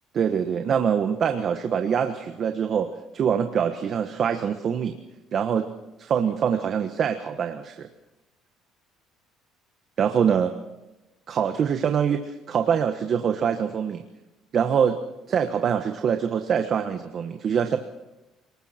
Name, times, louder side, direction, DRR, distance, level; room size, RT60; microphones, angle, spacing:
voice 1, 0.1-2.9 3.1-5.0 5.3-5.7 6.0-7.9 10.0-10.5 11.3-14.0 14.5-15.0 15.3-17.8, right 7 dB, 45° right, 6 dB, 1.3 m, -24 dB
29.5 x 20.0 x 4.4 m, 1.0 s
cardioid pair, 135°, 0 cm